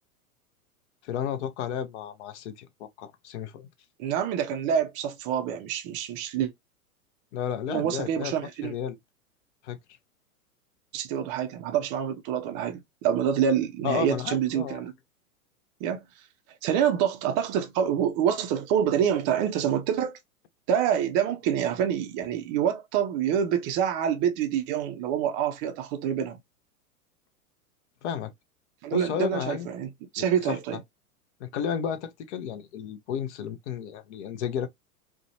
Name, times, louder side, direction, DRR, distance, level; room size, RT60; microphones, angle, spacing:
voice 1, 1.0-3.7 7.3-8.3 8.6-9.0 9.6-9.8 13.8-14.8 28.0-28.3 28.9-29.7 30.2-30.6 31.4-34.7, left 8 dB, 50° left, 0.5 m, -32 dB
voice 2, 4.0-6.5 7.7-8.7 10.9-14.9 15.8-16.0 16.6-20.2 20.7-26.4 28.8-30.8, right 9 dB, 25° right, 0.4 m, -26 dB
2.5 x 2.1 x 2.7 m
hypercardioid pair, 100°, 45 cm